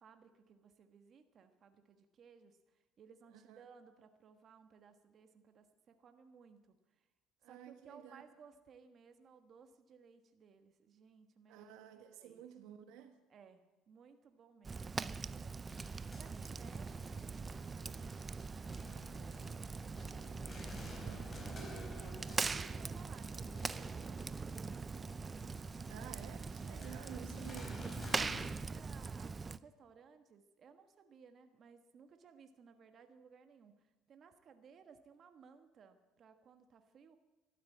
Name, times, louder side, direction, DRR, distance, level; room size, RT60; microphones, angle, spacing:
voice 1, 0.0-7.1 7.4-12.4 13.3-25.2 26.6-27.0 28.0-37.2, right 6 dB, 50° right, 7 dB, 1.5 m, -61 dB
voice 2, 7.4-8.2 11.5-13.2 20.9-21.3 25.9-27.8, right 10 dB, 75° right, 7 dB, 1.4 m, -52 dB
Fire, 14.6-29.6, right 4 dB, 25° right, 0.5 m, -42 dB
sound 1, 15.7-28.5, left 1 dB, 25° left, 5.1 m, -53 dB
12.5 x 12.5 x 8.5 m, 1.1 s
supercardioid pair, 80°, 0 cm